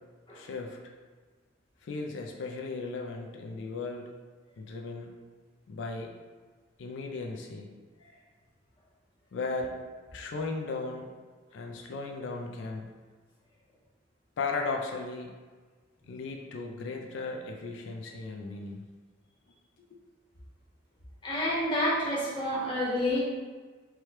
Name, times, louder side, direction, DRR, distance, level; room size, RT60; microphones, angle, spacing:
voice 1, 0.3-0.8 1.8-4.1 4.6-5.1 5.7-6.1 6.8-7.7 9.3-9.7 10.1-11.1 11.5-12.9 14.4-15.3 16.1-18.8 19.9-20.0, left 3 dB, 75° left, 2 dB, 0.4 m, -36 dB
voice 2, 21.2-23.2, left 1 dB, 25° left, -7 dB, 1.0 m, -28 dB
4.7 x 2.2 x 2.9 m, 1.4 s
head